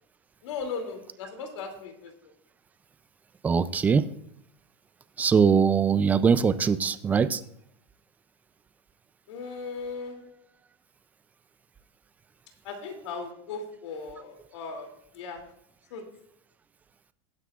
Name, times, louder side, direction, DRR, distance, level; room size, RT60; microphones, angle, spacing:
voice 1, 0.4-2.1 9.3-10.2 12.6-14.9 15.1-15.4 15.9-16.0, left 4 dB, 85° left, 4 dB, 2.7 m, -37 dB
voice 2, 3.4-4.1 5.2-7.4, right 6 dB, 10° right, 14 dB, 0.4 m, -22 dB
19.0 x 9.6 x 2.4 m, 0.75 s
supercardioid pair, 165°, 15 cm